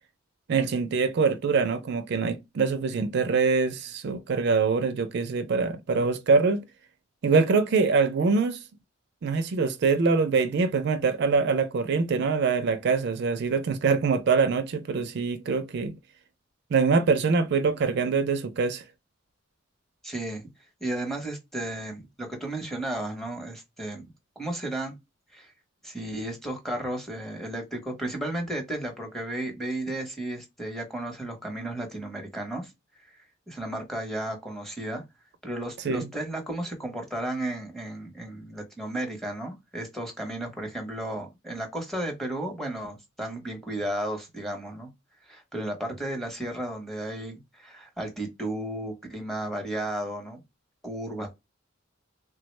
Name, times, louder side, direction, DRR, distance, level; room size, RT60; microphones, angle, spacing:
voice 1, 0.5-6.7 7.2-8.6 9.2-16.0 16.7-18.8 35.8-36.1, right 4 dB, 55° right, 0.4 m, -24 dB
voice 2, 20.0-20.5 20.8-24.0 24.4-25.0 25.3-25.5 25.8-32.7 33.5-35.0 35.4-44.9 45.3-50.4 50.8-51.3, right 1 dB, ahead, 0.8 m, -33 dB
3.3 x 2.0 x 3.1 m
head